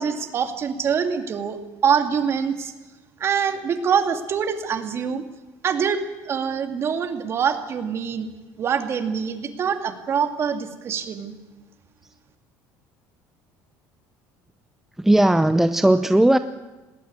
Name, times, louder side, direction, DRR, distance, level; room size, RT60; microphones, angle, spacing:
voice 1, 0.0-1.6 1.8-2.7 3.2-5.2 5.6-8.3 8.6-11.3, right 7 dB, 40° right, 7 dB, 2.3 m, -24 dB
voice 2, 15.0-16.4, right 1 dB, 5° right, 10 dB, 0.6 m, -17 dB
20.0 x 17.0 x 9.6 m, 1.1 s
cardioid pair, 120°, 7 cm